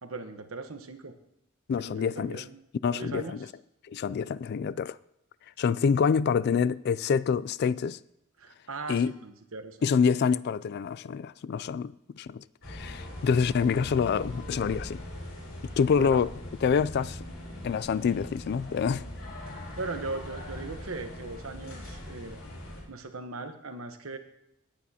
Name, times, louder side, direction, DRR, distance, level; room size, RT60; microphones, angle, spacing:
voice 1, 0.0-1.2 1.8-2.6 2.9-3.5 8.4-9.8 15.9-16.2 19.4-22.5 22.9-24.2, right 3 dB, 85° right, 1.1 m, -39 dB
voice 2, 1.7-2.4 2.8-3.4 3.9-5.0 5.6-8.0 8.9-9.1 9.8-15.0 15.8-16.3 16.6-17.2 17.6-19.0, left 6 dB, 50° left, 0.3 m, -26 dB
sound 1, 12.6-22.8, left 1 dB, 75° left, 3.7 m, -41 dB
18.5 x 8.4 x 2.8 m
head